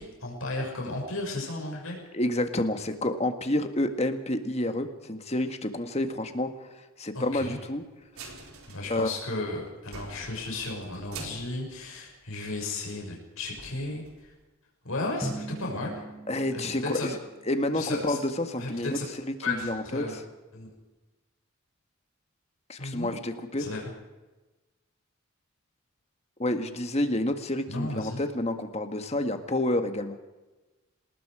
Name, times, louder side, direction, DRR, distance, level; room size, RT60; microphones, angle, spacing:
voice 1, 0.0-2.0 7.1-7.6 8.7-14.3 14.8-16.0 16.5-17.1 17.7-18.2 18.6-19.1 19.4-20.2 20.5-20.7 22.8-23.1 23.6-23.8 27.7-28.2, left 2 dB, 70° left, -1 dB, 6.3 m, -34 dB
voice 2, 2.1-6.5 7.0-7.8 8.9-9.1 16.3-17.2 17.5-19.0 19.5-20.0 22.7-23.6 26.4-30.2, left 1 dB, 30° left, 7 dB, 1.7 m, -29 dB
sound 1, 8.1-9.5 9.8-12.6 12.9-13.0 13.4-14.4, right 3 dB, 80° right, 4.4 m, -46 dB
Drum, 15.2-17.9, right 1 dB, 5° left, 2.3 m, -41 dB
27.0 x 19.5 x 5.0 m, 1.1 s
head